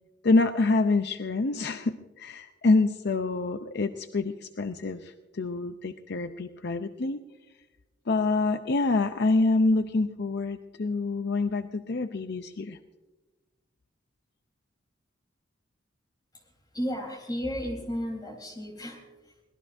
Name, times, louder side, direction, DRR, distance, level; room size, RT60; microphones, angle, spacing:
voice 1, 0.2-7.2 8.1-12.8, left 3 dB, 60° left, 8 dB, 0.6 m, -26 dB
voice 2, 16.7-19.4, equal, 20° left, 2 dB, 3.7 m, -34 dB
24.0 x 18.5 x 2.6 m, 1.1 s
head